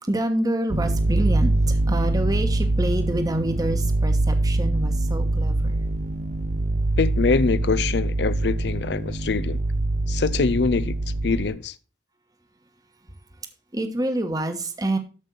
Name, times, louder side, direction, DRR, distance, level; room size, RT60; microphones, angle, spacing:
voice 1, 0.0-5.8 13.7-15.0, right 1 dB, 20° right, 1.2 m, -27 dB
sound 1, 0.7-11.5, right 2 dB, 45° right, 0.7 m, -24 dB
voice 2, 7.0-9.6 10.1-11.0 11.2-11.8, left 4 dB, 70° left, 0.5 m, -24 dB
13.0 x 5.4 x 3.9 m
head